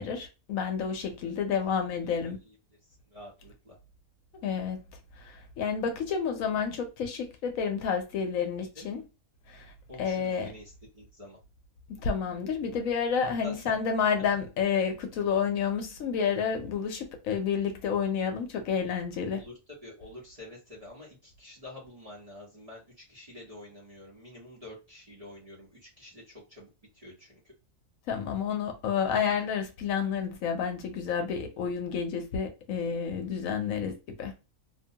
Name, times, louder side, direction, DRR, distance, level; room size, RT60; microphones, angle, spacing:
voice 1, 0.0-2.4 4.4-4.8 5.2-9.0 9.5-9.7 10.0-10.5 12.0-19.4 28.1-34.3, left 6 dB, 75° left, 1.0 m, -30 dB
voice 2, 2.0-2.6 3.1-3.8 8.7-8.9 9.9-11.4 13.4-13.8 19.3-19.5 19.8-27.5, left 1 dB, 30° right, 0.8 m, -48 dB
2.6 x 2.2 x 2.7 m
omnidirectional pair, 1.5 m